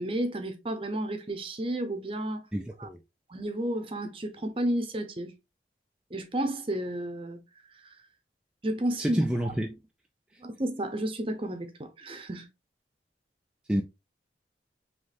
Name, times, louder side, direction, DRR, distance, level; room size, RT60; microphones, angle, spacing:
voice 1, 0.0-2.4 2.8-2.9 3.3-5.3 6.1-7.4 7.8-7.9 8.6-9.2 10.4-12.5, right 1 dB, 30° right, 0.7 m, -32 dB
voice 2, 2.5-3.0 9.0-9.8 13.7-13.8, equal, 5° right, 0.3 m, -28 dB
4.8 x 3.1 x 2.6 m
head